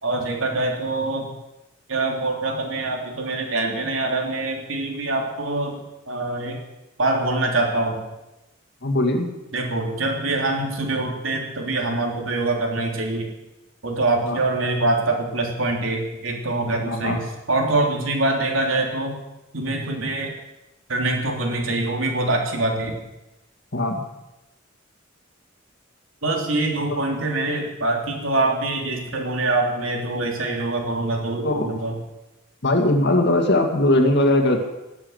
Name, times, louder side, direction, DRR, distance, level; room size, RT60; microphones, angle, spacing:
voice 1, 0.0-1.3 1.9-6.6 7.0-8.0 9.5-13.3 13.8-17.2 17.5-19.2 19.5-20.3 20.9-22.9 26.2-31.9, right 2 dB, 85° right, 1 dB, 3.3 m, -24 dB
voice 2, 8.8-9.3 14.2-14.4 16.8-17.2 23.7-24.0 31.4-31.7 32.6-34.6, left 1 dB, 60° left, 4 dB, 2.3 m, -20 dB
18.5 x 7.8 x 8.2 m, 0.96 s
head